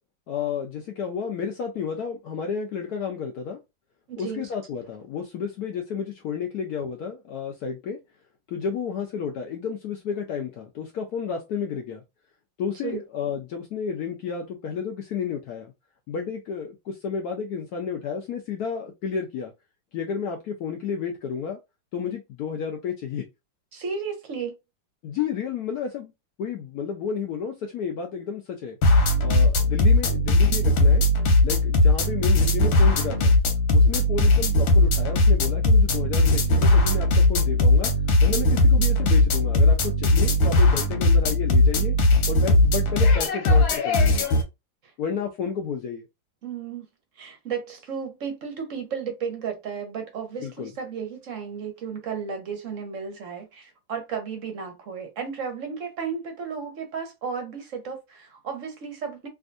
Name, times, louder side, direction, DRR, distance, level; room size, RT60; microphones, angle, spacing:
voice 1, 0.3-3.6 4.2-8.0 8.5-12.0 12.6-15.7 16.1-19.5 19.9-21.6 21.9-23.2 25.0-26.1 26.4-28.8 29.2-31.1 31.4-33.3 33.7-37.9 38.2-42.0 42.3-44.3 45.0-46.1 50.4-50.7, left 6 dB, 70° left, 0.9 m, -31 dB
voice 2, 4.1-4.4 12.8-13.0 23.7-24.6 33.8-33.9 46.4-46.9 47.2-59.3, right 6 dB, 60° right, 0.8 m, -33 dB
sound 1, 28.8-44.4, left 2 dB, 90° left, 1.6 m, -19 dB
3.5 x 2.5 x 2.5 m
omnidirectional pair, 2.1 m